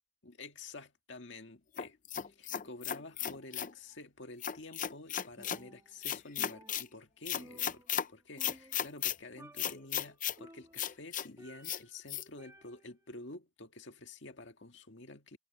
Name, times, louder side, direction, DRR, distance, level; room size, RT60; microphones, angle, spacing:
voice 1, 0.2-2.0 2.2-7.8 8.1-15.4, left 2 dB, 70° left, 1.9 m, -50 dB
sound 1, 1.8-3.7 4.4-5.6 6.0-6.9 7.3-8.1 8.4-9.2 9.6-10.4 10.8-11.3 11.6-11.8 12.1-12.2, left 10 dB, 45° left, 0.7 m, -35 dB
Percussion, 5.4-6.1 6.4-8.1 8.4-9.1 9.4-9.9 10.4-12.0 12.4-13.0, right 1 dB, 15° right, 2.3 m, -56 dB
head